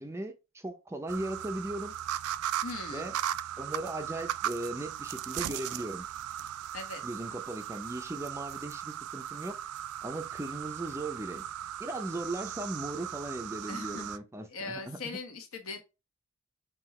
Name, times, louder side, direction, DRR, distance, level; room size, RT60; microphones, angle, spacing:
voice 1, 0.0-2.0 2.9-3.2 3.6-6.1 7.0-9.6 10.0-11.4 11.8-15.2, right 1 dB, 10° right, 0.5 m, -38 dB
sound 1, 1.1-14.2, right 11 dB, 85° right, 0.3 m, -37 dB
voice 2, 2.6-3.1 6.7-7.0 13.7-14.2 14.5-15.8, left 3 dB, 75° left, 1.1 m, -40 dB
5.7 x 2.5 x 3.0 m
head